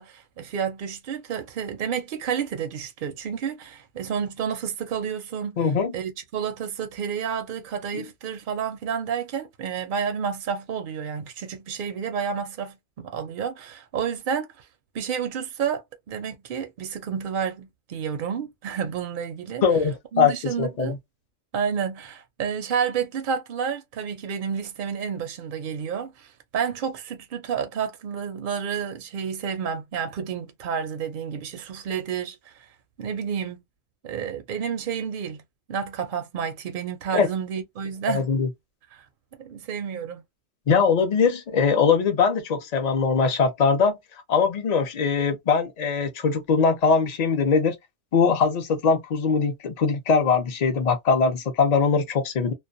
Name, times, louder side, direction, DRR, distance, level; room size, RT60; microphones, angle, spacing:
voice 1, 0.0-5.6 5.9-14.6 14.9-19.6 20.1-21.0 21.5-32.5 33.0-33.6 34.0-35.4 35.7-38.3 38.9-39.0 39.4-40.2, right 7 dB, 60° right, 0.6 m, -30 dB
voice 2, 5.6-5.9 19.6-21.0 37.1-37.3 38.1-38.5 40.7-44.0 44.3-47.8 48.1-52.5, left 5 dB, 50° left, 0.5 m, -21 dB
2.3 x 2.1 x 2.5 m
omnidirectional pair, 1.3 m